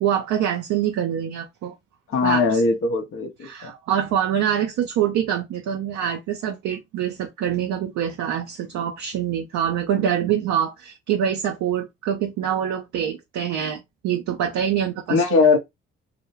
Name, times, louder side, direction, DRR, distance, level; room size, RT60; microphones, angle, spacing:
voice 1, 0.0-1.7 2.2-2.6 3.4-15.4, right 9 dB, 60° right, 0.5 m, -25 dB
voice 2, 2.1-3.7 15.1-15.6, left 4 dB, 40° left, 0.6 m, -20 dB
2.2 x 2.1 x 3.0 m
figure-of-eight pair, 40°, 32 cm